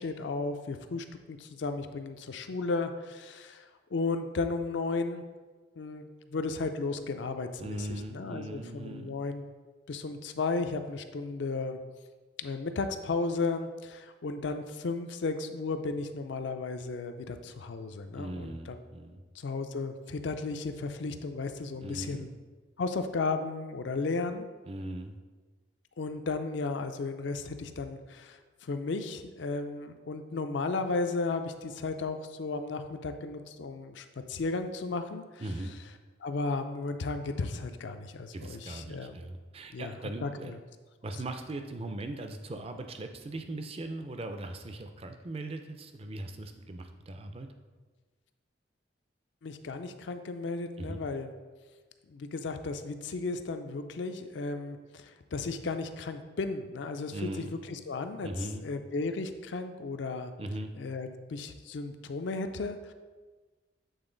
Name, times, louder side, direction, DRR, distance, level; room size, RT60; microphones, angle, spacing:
voice 1, 0.0-5.2 5.8-9.4 9.9-11.8 12.4-18.8 19.3-22.3 22.8-24.5 26.0-35.4 36.2-39.2 39.7-39.9 40.2-40.6 49.4-51.3 52.1-60.3 60.8-62.9, left 3 dB, 65° left, 8 dB, 0.4 m, -34 dB
voice 2, 7.6-9.1 18.2-19.2 21.8-22.3 24.7-25.1 35.4-35.7 38.3-40.6 41.0-47.5 50.8-51.0 57.1-57.5 58.2-58.6 60.4-60.7, right 1 dB, 30° right, 6 dB, 0.4 m, -39 dB
8.0 x 3.7 x 3.8 m, 1.3 s
head